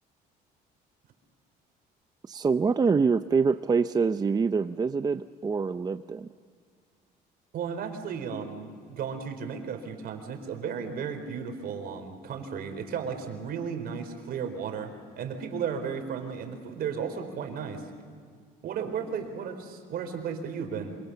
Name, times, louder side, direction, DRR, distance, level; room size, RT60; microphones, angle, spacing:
voice 1, 2.2-6.3, right 5 dB, 25° right, 11 dB, 0.6 m, -25 dB
voice 2, 7.5-17.8 18.6-21.0, right 6 dB, 65° right, 6 dB, 4.4 m, -34 dB
27.0 x 25.5 x 7.0 m, 2.1 s
cardioid pair, 110°, 17 cm